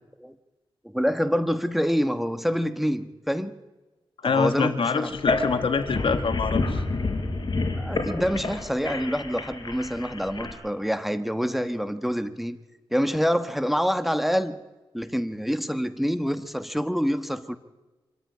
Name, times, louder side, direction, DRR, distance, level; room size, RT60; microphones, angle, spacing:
voice 1, 0.8-3.5 4.2-5.1 7.8-12.6 12.9-14.6 14.9-17.6, equal, ahead, 1.4 m, -26 dB
voice 2, 4.2-6.8, left 5 dB, 75° left, 1.9 m, -25 dB
sound 1, 5.1-10.5, left 3 dB, 50° left, 4.5 m, -29 dB
25.0 x 13.5 x 9.6 m
cardioid pair, 55°, 9 cm